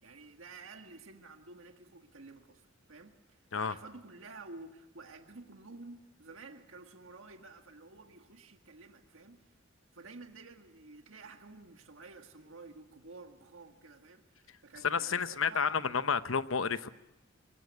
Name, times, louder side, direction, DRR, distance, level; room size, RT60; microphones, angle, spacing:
voice 1, 0.0-9.4 9.9-15.7, right 3 dB, 75° right, 5 dB, 1.8 m, -51 dB
voice 2, 14.8-16.9, left 6 dB, 80° left, 13 dB, 0.9 m, -30 dB
23.5 x 19.5 x 9.4 m, 0.98 s
head